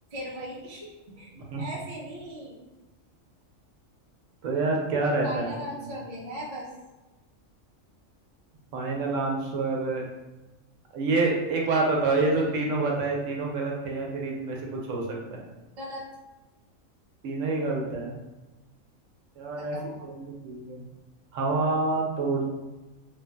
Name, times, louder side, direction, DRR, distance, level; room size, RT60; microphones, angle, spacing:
voice 1, 0.1-2.6 5.2-6.7 12.3-12.6 15.8-16.1 19.6-20.1, equal, 50° right, -4 dB, 0.4 m, -39 dB
voice 2, 4.4-5.6 8.7-10.0 10.9-15.4 17.2-18.1 19.4-20.8 21.3-22.5, right 3 dB, 75° right, -1 dB, 0.9 m, -27 dB
3.0 x 2.5 x 2.2 m, 1.1 s
omnidirectional pair, 1.4 m